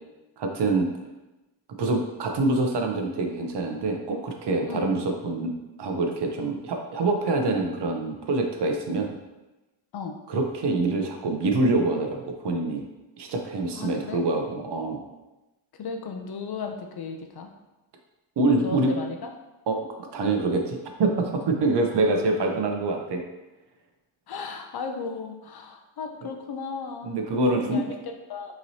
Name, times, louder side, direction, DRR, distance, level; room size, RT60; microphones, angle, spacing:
voice 1, 0.4-0.9 1.8-5.5 5.8-9.1 10.3-12.8 13.2-15.0 18.4-18.9 19.7-19.8 20.1-23.2 26.2-26.3 27.0-27.8, right 2 dB, 60° right, 3 dB, 0.7 m, -25 dB
voice 2, 13.7-14.3 15.8-17.5 18.5-19.3 21.9-22.0 24.3-27.1 27.3-28.5, left 4 dB, 55° left, 4 dB, 0.5 m, -35 dB
5.7 x 3.1 x 2.7 m, 1.0 s
wide cardioid pair, 180°, 47 cm